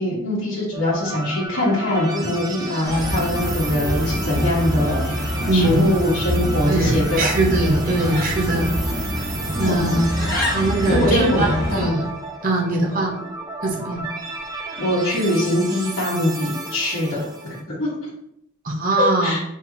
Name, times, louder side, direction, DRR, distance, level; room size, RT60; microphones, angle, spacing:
voice 1, 0.0-7.4 9.6-10.0 10.9-11.9 14.8-18.0 19.0-19.4, left 1 dB, 70° left, -9 dB, 1.4 m, -22 dB
sound 1, 0.7-17.6, right 3 dB, 20° right, 0.5 m, -33 dB
Bird, 2.8-11.9, equal, 45° left, 1.3 m, -25 dB
voice 2, 5.5-5.8 6.7-8.7 9.6-11.5 11.7-12.1 12.4-13.1 13.6-14.0 18.6-19.3, right 2 dB, 40° right, -1 dB, 0.9 m, -21 dB
4.4 x 3.5 x 2.9 m, 0.79 s
head